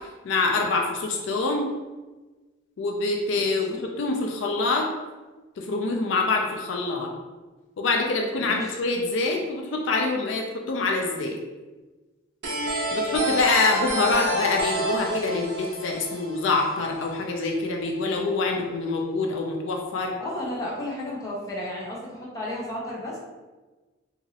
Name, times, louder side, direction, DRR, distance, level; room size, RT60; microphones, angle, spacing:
voice 1, 0.0-1.7 2.8-4.9 5.6-7.1 7.8-11.4 12.9-20.2, left 3 dB, 65° left, 2 dB, 0.3 m, -25 dB
voice 2, 3.4-3.8 8.5-8.6 20.2-23.2, left 1 dB, 15° left, -5 dB, 0.6 m, -33 dB
sound 1, 12.4-17.1, right 1 dB, 55° right, 0.6 m, -28 dB
2.9 x 2.5 x 2.7 m, 1.2 s
head